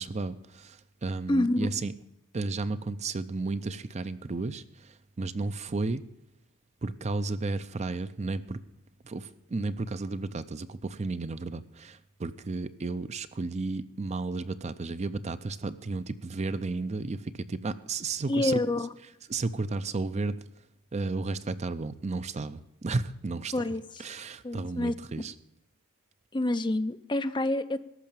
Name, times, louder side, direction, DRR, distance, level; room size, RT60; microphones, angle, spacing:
voice 1, 0.0-1.9 2.3-6.0 6.8-8.6 9.0-18.6 19.3-20.4 20.9-23.5 24.0-25.3, right 3 dB, 30° right, 13 dB, 0.5 m, -33 dB
voice 2, 1.3-1.7 18.3-18.9 23.5-24.0 24.4-24.9 26.3-27.8, left 2 dB, 20° left, 10 dB, 0.5 m, -27 dB
14.0 x 5.7 x 8.7 m, 0.88 s
head